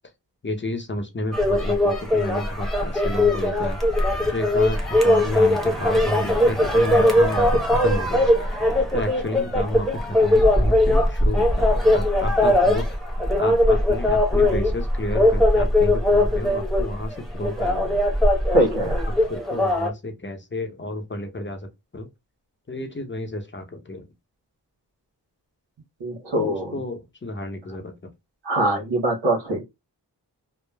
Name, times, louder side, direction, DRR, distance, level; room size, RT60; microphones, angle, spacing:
voice 1, 0.4-3.8 4.2-8.3 8.9-12.9 13.4-18.0 18.5-18.7 19.1-22.1 22.7-24.1 26.3-28.1, left 1 dB, 25° left, 0.7 m, -31 dB
sound 1, 1.3-19.9, left 1 dB, ahead, 1.0 m, -20 dB
voice 2, 18.5-19.0 26.0-26.8 28.4-29.6, right 1 dB, 90° right, 1.0 m, -23 dB
3.2 x 2.0 x 2.2 m
cardioid pair, 45°, 42 cm